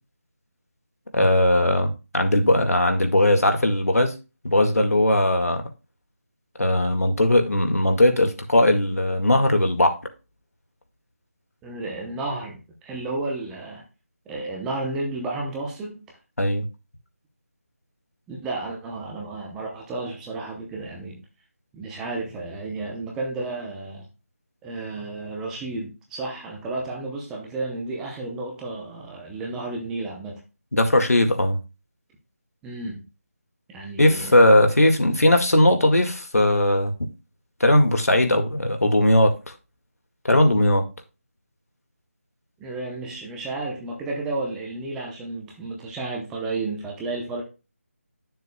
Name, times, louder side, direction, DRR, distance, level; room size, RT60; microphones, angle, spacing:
voice 1, 1.1-4.1 4.4-5.6 6.6-10.0 16.4-16.7 30.7-31.6 34.0-36.9 37.6-39.5 40.2-40.9, left 1 dB, 90° left, 1.9 m, -19 dB
voice 2, 11.6-13.8 14.3-16.2 18.3-21.2 21.7-24.1 24.6-30.4 32.6-33.0 33.7-34.5 42.6-47.4, right 2 dB, 5° right, 0.8 m, -32 dB
10.0 x 6.8 x 2.3 m
figure-of-eight pair, 170°, 8 cm